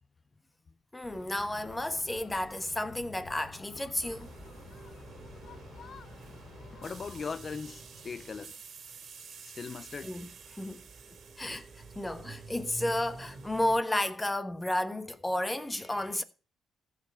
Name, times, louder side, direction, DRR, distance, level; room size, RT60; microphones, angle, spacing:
voice 1, 0.9-4.3 10.0-10.8 11.4-11.7 11.9-16.2, left 1 dB, 15° left, 1.2 m, -32 dB
sound 1, 1.0-7.3, left 6 dB, 55° left, 1.0 m, -50 dB
sound 2, 4.0-13.8, right 4 dB, 55° right, 2.5 m, -48 dB
voice 2, 6.8-8.6 9.4-10.1, left 5 dB, 40° left, 0.5 m, -39 dB
14.5 x 5.1 x 7.8 m
cardioid pair, 90°, 0 cm